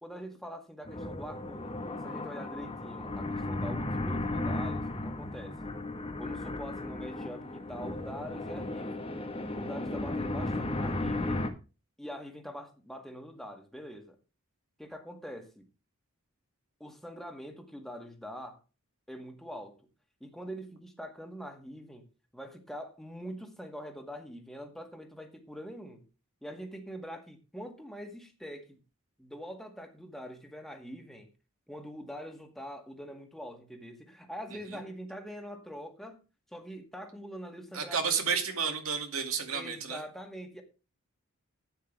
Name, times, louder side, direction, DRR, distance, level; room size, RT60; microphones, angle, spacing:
voice 1, 0.0-5.7 6.2-9.1 9.6-11.5 12.0-14.2 14.8-15.6 16.8-18.6 19.1-19.8 20.2-22.1 22.3-26.0 26.4-28.8 29.2-31.3 31.7-36.2 36.5-38.4 39.5-40.6, equal, ahead, 1.9 m, -44 dB
sound 1, 0.8-11.5, left 2 dB, 25° left, 1.3 m, -35 dB
voice 2, 37.7-40.0, right 6 dB, 70° right, 2.3 m, -31 dB
11.5 x 9.1 x 3.4 m
head